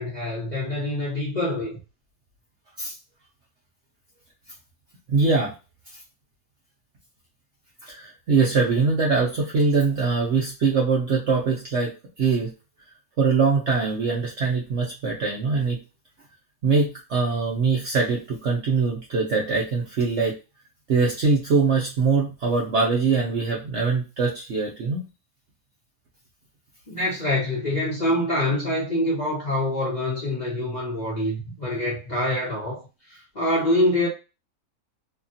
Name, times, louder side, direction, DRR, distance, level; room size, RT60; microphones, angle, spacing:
voice 1, 0.0-1.8 26.9-34.1, left 1 dB, 35° left, 0.8 m, -25 dB
voice 2, 5.1-5.5 7.9-11.9 12.2-12.5 13.2-15.8 16.6-20.3 20.9-25.0, right 4 dB, 60° right, 0.8 m, -22 dB
2.9 x 2.4 x 2.6 m
omnidirectional pair, 1.7 m